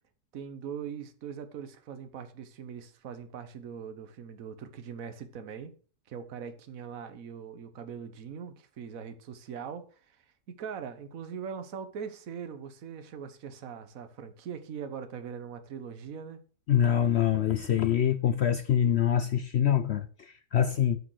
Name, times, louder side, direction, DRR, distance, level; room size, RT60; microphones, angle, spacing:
voice 1, 0.3-5.7 6.1-16.4, right 7 dB, 60° right, 1.4 m, -41 dB
voice 2, 16.7-21.0, left 9 dB, 65° left, 0.7 m, -25 dB
8.7 x 6.5 x 6.2 m
omnidirectional pair, 1.7 m